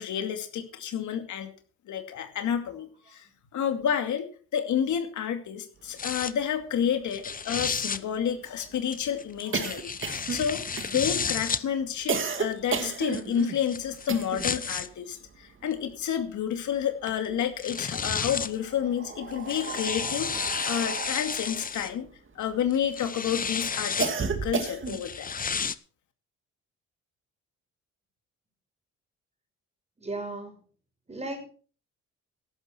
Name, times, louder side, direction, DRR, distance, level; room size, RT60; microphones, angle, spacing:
voice 1, 0.0-1.5 1.9-4.3 4.5-22.1 22.3-25.3, left 8 dB, 75° left, 6 dB, 2.5 m, -30 dB
sound 1, 6.0-6.3 7.1-8.0 8.9-11.6 12.5-14.9 15.7-15.8 17.2-17.3 17.6-18.6 19.3-21.9 22.7-24.1 24.9-25.7, left 6 dB, 30° left, 0.8 m, -32 dB
sound 2, 6.4-6.5 6.7-6.8 7.1-14.6 14.9-16.5 16.8-17.8 18.5-23.0 23.4-25.1, right 5 dB, 40° right, 2.3 m, -34 dB
voice 2, 30.0-30.6 31.1-31.5, right 2 dB, 20° right, 5 dB, 5.7 m, -36 dB
14.5 x 12.0 x 4.5 m, 0.41 s
cardioid pair, 90°, 30 cm